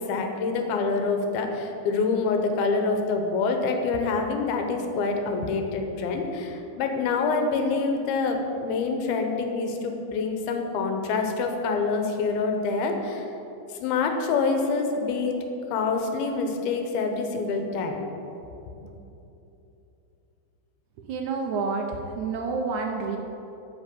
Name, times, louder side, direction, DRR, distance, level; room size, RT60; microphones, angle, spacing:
voice 1, 0.0-13.3 13.7-15.4 15.7-18.0, left 4 dB, 80° left, 4 dB, 2.8 m, -26 dB
voice 2, 21.0-23.2, right 4 dB, 85° right, 3 dB, 1.6 m, -29 dB
8.7 x 6.1 x 7.6 m, 3.0 s
omnidirectional pair, 4.3 m